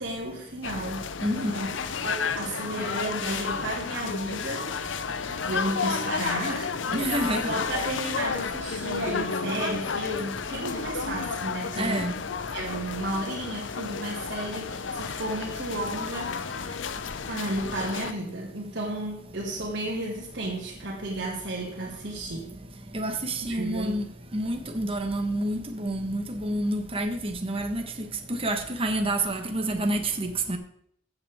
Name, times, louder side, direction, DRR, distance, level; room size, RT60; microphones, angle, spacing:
voice 1, 0.0-1.1 1.3-1.7 2.0-5.0 5.5-7.0 7.5-12.0 12.5-16.8 17.2-22.5 23.5-23.9, right 1 dB, 65° right, -4 dB, 2.0 m, -33 dB
sound 1, 0.6-18.1, left 5 dB, 75° left, 0.6 m, -32 dB
voice 2, 6.9-7.5 11.8-12.1 22.9-24.0 24.3-30.6, right 1 dB, 30° right, 4 dB, 1.2 m, -28 dB
14.5 x 8.1 x 3.6 m, 0.68 s
head